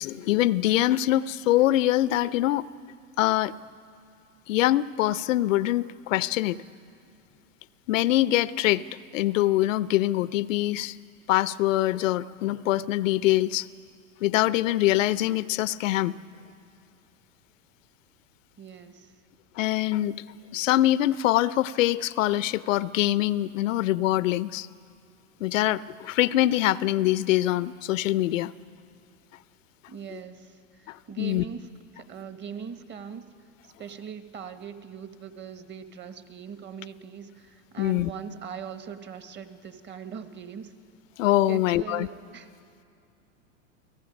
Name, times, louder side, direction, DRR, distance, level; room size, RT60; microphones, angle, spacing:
voice 1, 0.0-2.7 3.2-3.5 4.5-6.6 7.9-8.8 9.1-11.0 11.3-13.7 14.2-16.1 19.6-20.2 20.5-24.7 25.4-28.5 30.9-31.4 37.8-38.1 41.2-42.1, left 15 dB, 75° left, 18 dB, 0.6 m, -24 dB
voice 2, 18.6-19.2 29.9-31.7 31.9-33.3 33.6-40.7 41.5-42.5, right 7 dB, 25° right, 9 dB, 1.4 m, -41 dB
29.0 x 18.5 x 5.2 m, 2.6 s
hypercardioid pair, 110°, 39 cm